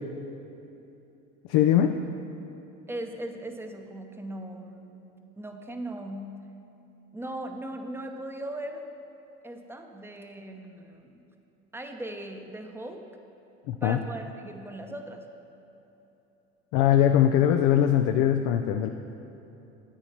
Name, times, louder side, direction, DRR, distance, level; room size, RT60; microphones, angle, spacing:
voice 1, 1.5-1.9 13.7-14.0 16.7-18.9, left 10 dB, 65° left, 6 dB, 0.5 m, -21 dB
voice 2, 2.9-6.3 7.1-8.9 9.4-11.2 11.7-13.0 13.8-15.2, right 1 dB, 5° right, 4 dB, 0.8 m, -38 dB
8.9 x 7.4 x 4.3 m, 3.0 s
hypercardioid pair, 80°, 35 cm